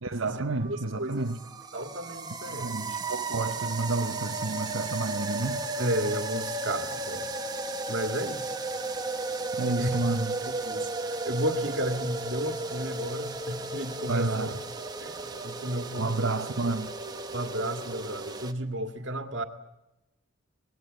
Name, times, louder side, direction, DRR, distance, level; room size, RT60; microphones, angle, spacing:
voice 1, 0.0-1.4 2.4-5.7 9.5-10.3 14.1-14.6 16.0-16.9, right 2 dB, 75° right, 1.0 m, -30 dB
sound 1, 0.6-18.5, right 2 dB, 20° right, 1.2 m, -34 dB
voice 2, 0.7-1.3 1.7-2.8 5.8-7.3 7.9-8.5 9.8-10.0 10.4-14.6 15.0-16.4 17.3-19.4, right 1 dB, 60° right, 2.0 m, -33 dB
26.0 x 20.0 x 8.0 m
head